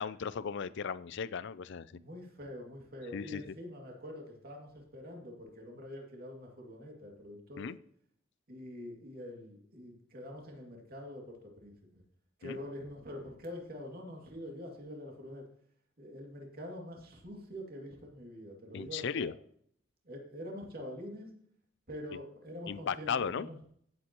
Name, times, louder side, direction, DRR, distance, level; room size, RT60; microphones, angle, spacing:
voice 1, 0.0-1.9 3.1-3.4 7.6-7.8 12.4-12.6 18.7-19.3 22.7-23.5, left 6 dB, 60° left, 17 dB, 0.4 m, -36 dB
voice 2, 1.9-7.7 8.5-12.0 12.4-15.4 16.0-19.3 20.0-21.3 21.9-23.6, left 1 dB, 50° right, 0 dB, 2.4 m, -45 dB
16.5 x 7.8 x 3.0 m, 0.65 s
head